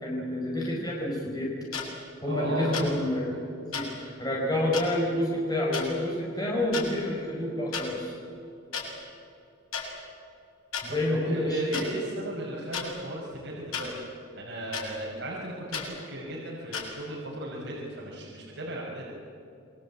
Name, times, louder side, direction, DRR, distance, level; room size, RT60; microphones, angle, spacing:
voice 1, 0.0-1.5 2.2-8.2 10.8-11.8, left 1 dB, 20° left, -3 dB, 5.2 m, -29 dB
sound 1, 1.7-1.8 2.7-2.9 3.7-3.8 4.7-4.8 5.7-5.9 6.6-6.9 7.7-7.8 8.7-8.8 9.7-9.8 10.7-10.8 11.7-11.8 12.7-12.9 13.7-13.9 14.7-14.8 15.7-15.9 16.7-16.8, left 7 dB, 80° left, 7.4 m, -32 dB
voice 2, 2.2-3.0 3.3-3.4 10.9-13.9 14.3-19.0, right 1 dB, 55° right, -4 dB, 5.5 m, -36 dB
28.0 x 23.5 x 8.6 m, 2.6 s
head